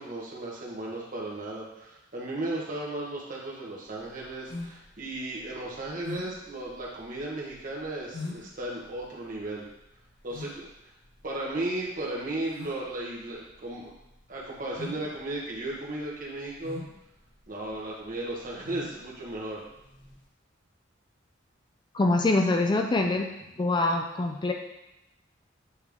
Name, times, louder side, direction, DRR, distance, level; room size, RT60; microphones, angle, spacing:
voice 1, 0.0-9.6 10.2-10.7 11.2-13.9 14.3-16.8 17.5-19.6, right 2 dB, 45° right, -4 dB, 1.4 m, -35 dB
sound 1, 3.9-20.2, left 2 dB, 70° left, 1.9 m, -44 dB
voice 2, 21.9-23.3 23.6-24.5, left 2 dB, 25° left, 3 dB, 0.3 m, -24 dB
8.2 x 3.3 x 3.5 m, 0.90 s
head